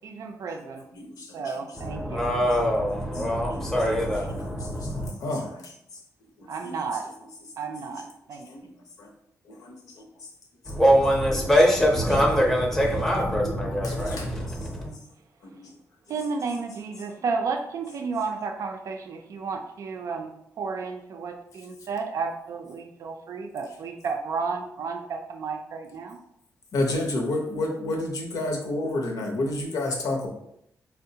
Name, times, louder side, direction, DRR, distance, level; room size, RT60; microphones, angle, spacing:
voice 1, 0.0-0.8 1.3-2.2 6.5-7.1 7.6-8.5 16.1-20.3 20.6-26.2, right 4 dB, 60° right, 4 dB, 0.4 m, -32 dB
voice 2, 0.9-1.6 2.5-2.6 3.1-3.2 3.5-3.7 4.0-5.7 6.4-6.8 8.5-8.6 9.0-9.1 9.4-10.0 13.6-14.7 15.4-15.8 26.7-30.3, left 2 dB, 85° left, 1 dB, 0.7 m, -31 dB
voice 3, 1.8-5.1 10.7-14.9, equal, 5° left, -2 dB, 0.6 m, -23 dB
4.4 x 2.1 x 2.7 m, 0.75 s
wide cardioid pair, 135°, 6 cm